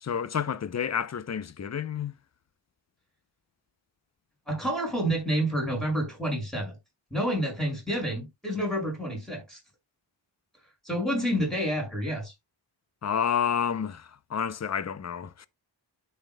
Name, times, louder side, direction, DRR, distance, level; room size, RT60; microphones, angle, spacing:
voice 1, 0.0-2.1 13.0-15.5, left 7 dB, 35° left, 0.7 m, -30 dB
voice 2, 4.5-6.7 7.1-9.6 10.8-12.3, equal, ahead, 5.9 m, -29 dB
12.5 x 5.8 x 2.3 m
wide cardioid pair, 75°, 46 cm